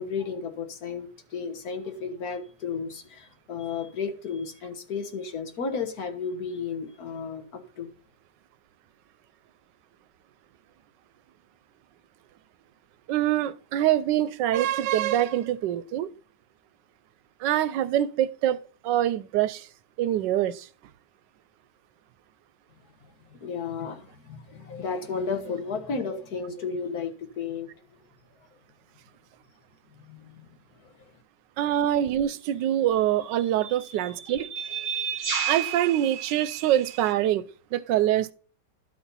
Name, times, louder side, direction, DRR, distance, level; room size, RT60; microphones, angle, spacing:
voice 1, 0.0-7.9 23.0-28.0 30.0-31.1, left 5 dB, 60° left, 1.8 m, -34 dB
voice 2, 13.1-16.1 17.4-19.7 20.0-20.7 31.6-38.3, right 12 dB, 85° right, 1.3 m, -25 dB
sound 1, 31.7-31.9 32.9-37.1, right 5 dB, 45° right, 2.1 m, -35 dB
12.0 x 4.3 x 5.4 m
omnidirectional pair, 1.9 m